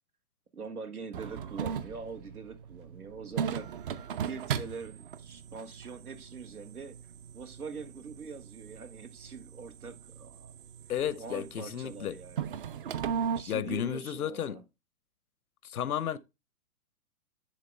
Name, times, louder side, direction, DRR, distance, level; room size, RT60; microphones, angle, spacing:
voice 1, 0.5-7.0 7.3-10.5 11.1-12.5 13.3-14.6, right 5 dB, 85° right, 1.6 m, -43 dB
sound 1, 1.1-13.4, right 7 dB, 40° right, 0.6 m, -38 dB
voice 2, 10.9-12.1 13.5-14.6 15.6-16.2, left 9 dB, 80° left, 0.8 m, -33 dB
10.5 x 3.8 x 3.3 m
hypercardioid pair, 125°, 43 cm